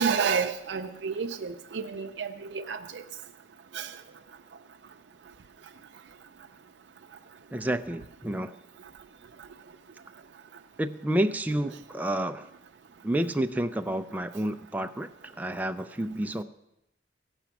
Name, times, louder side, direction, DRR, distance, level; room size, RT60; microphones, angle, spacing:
voice 1, 0.0-3.0 3.7-3.9, right 6 dB, 75° right, 5 dB, 0.5 m, -30 dB
voice 2, 7.5-8.6 10.8-12.5 13.0-16.4, right 1 dB, 10° right, 7 dB, 0.3 m, -30 dB
16.0 x 5.9 x 5.9 m, 0.88 s
head